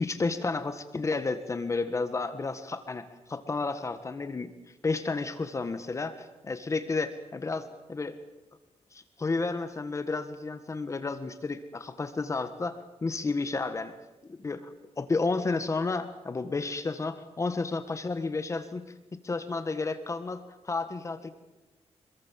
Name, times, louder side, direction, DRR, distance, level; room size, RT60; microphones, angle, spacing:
voice 1, 0.0-4.5 4.8-8.2 8.9-13.9 14.3-18.8 19.2-21.3, left 3 dB, 25° left, 10 dB, 1.5 m, -32 dB
26.0 x 22.0 x 7.5 m, 1.0 s
wide cardioid pair, 180°, 11 cm